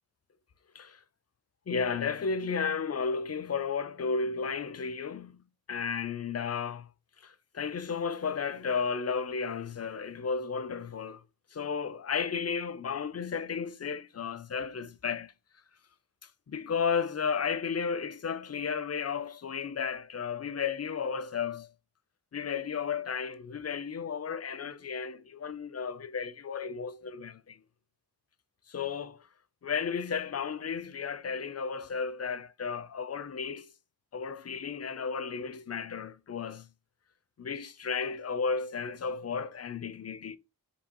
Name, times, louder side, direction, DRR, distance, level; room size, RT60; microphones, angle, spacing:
voice 1, 1.7-5.4 5.7-6.9 7.2-11.2 11.5-15.3 16.5-21.7 22.3-27.6 28.7-29.3 29.6-33.7 34.1-36.7 37.4-40.4, left 6 dB, 40° left, 0.4 m, -33 dB
4.5 x 2.8 x 2.8 m
wide cardioid pair, 50°, 39 cm